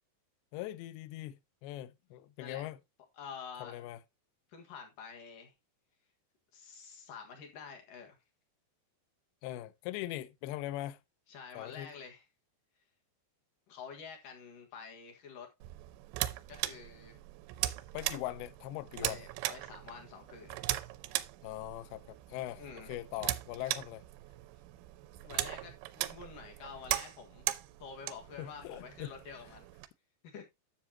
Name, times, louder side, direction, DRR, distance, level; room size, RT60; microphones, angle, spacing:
voice 1, 0.5-1.4 1.6-2.8 3.6-4.0 9.4-11.0 11.6-11.9 17.9-19.2 21.4-22.6 22.9-24.0 28.4-29.1, left 15 dB, 90° left, 2.2 m, -41 dB
voice 2, 3.2-3.9 4.5-5.5 6.5-8.2 11.3-12.2 13.7-15.5 16.5-17.2 19.0-20.6 22.6-22.9 25.1-27.5 27.8-29.7 30.3-30.5, left 6 dB, 60° left, 2.6 m, -48 dB
sound 1, 15.6-29.9, right 16 dB, 90° right, 3.0 m, -39 dB
10.0 x 7.2 x 2.8 m
omnidirectional pair, 5.2 m